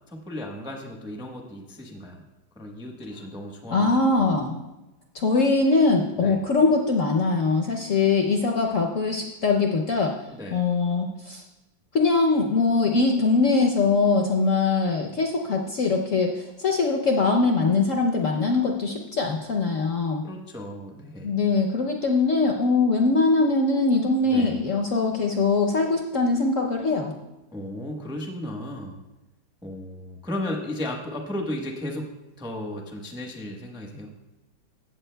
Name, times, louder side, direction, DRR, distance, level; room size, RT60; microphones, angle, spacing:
voice 1, 0.1-2.2 2.6-4.3 6.2-6.4 10.3-10.6 20.2-21.4 24.2-24.6 27.5-29.0 29.6-32.1 32.4-34.1, left 1 dB, 5° right, 0 dB, 0.5 m, -35 dB
voice 2, 3.7-4.6 5.1-10.1 10.5-11.4 11.9-20.2 21.2-27.1, left 3 dB, 60° left, 1 dB, 0.8 m, -22 dB
15.0 x 8.2 x 2.2 m, 1.0 s
omnidirectional pair, 2.0 m